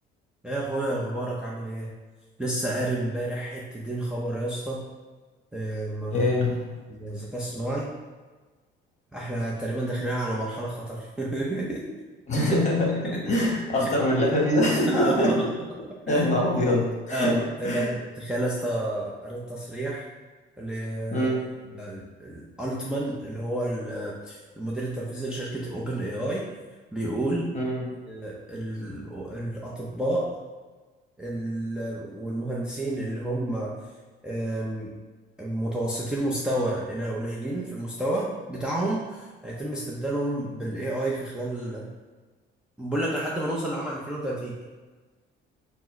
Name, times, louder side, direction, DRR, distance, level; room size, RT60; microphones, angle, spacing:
voice 1, 0.4-1.9 2.4-4.8 5.5-6.3 6.9-7.9 9.1-11.8 12.3-12.4 12.9-13.0 13.8-13.9 14.9-15.3 16.1-16.3 17.1-20.1 20.6-21.3 21.8-26.5 26.9-27.5 28.1-30.4 31.2-33.7 34.2-34.9 35.4-41.9 42.8-44.6, right 1 dB, 5° right, -5 dB, 0.6 m, -30 dB
voice 2, 6.1-6.8 12.3-15.4 16.1-17.9 21.1-21.5 27.5-28.0, left 1 dB, 35° left, -3 dB, 1.2 m, -24 dB
4.3 x 2.1 x 4.3 m, 1.3 s
cardioid pair, 110°, 21 cm